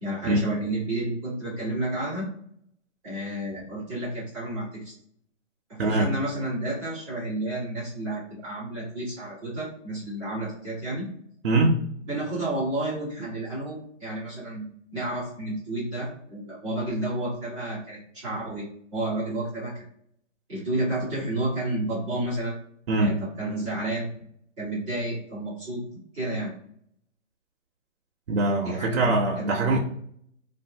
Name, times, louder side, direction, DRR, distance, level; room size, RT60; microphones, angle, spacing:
voice 1, 0.0-2.3 3.0-4.9 5.7-11.1 12.1-19.7 20.5-22.5 23.0-24.1 24.6-26.5 28.6-29.8, right 1 dB, ahead, -10 dB, 0.5 m, -31 dB
voice 2, 11.4-11.8 22.9-23.2 28.3-29.8, right 2 dB, 50° right, 1 dB, 0.5 m, -22 dB
2.5 x 2.4 x 3.3 m, 0.67 s
hypercardioid pair, 165°, 38 cm